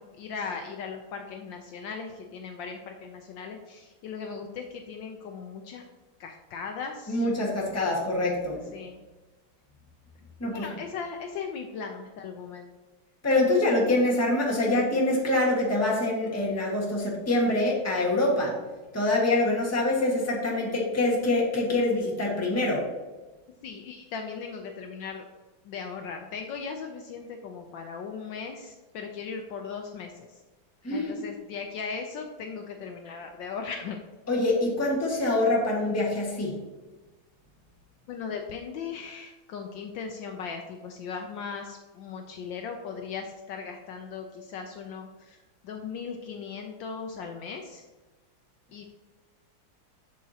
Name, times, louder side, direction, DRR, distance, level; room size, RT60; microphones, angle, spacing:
voice 1, 0.0-5.8 6.2-7.2 8.7-9.0 10.4-12.7 23.6-25.2 25.6-30.3 30.9-34.0 38.1-45.4 45.6-47.8 48.7-48.8, left 5 dB, 75° left, 4 dB, 1.2 m, -38 dB
voice 2, 7.1-8.6 10.4-10.7 13.2-18.6 18.9-22.9 30.8-31.2 34.3-36.6, left 2 dB, 10° left, -3 dB, 1.2 m, -25 dB
7.6 x 6.8 x 2.8 m, 1.2 s
omnidirectional pair, 2.3 m